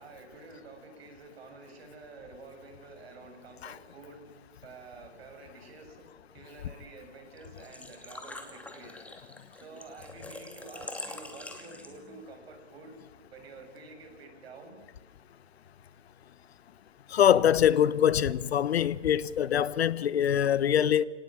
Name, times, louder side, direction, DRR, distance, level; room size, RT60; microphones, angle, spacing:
voice 1, 0.0-4.2 4.6-6.1 6.3-9.0 9.5-12.9 13.3-14.8, right 3 dB, 55° right, 7.7 m, -49 dB
Engine / Trickle dribble / Fill (with liquid), 7.4-12.2, left 2 dB, 5° left, 2.4 m, -44 dB
voice 2, 17.1-21.0, left 9 dB, 60° left, 1.0 m, -24 dB
30.0 x 18.5 x 9.2 m
hypercardioid pair, 135°, 36 cm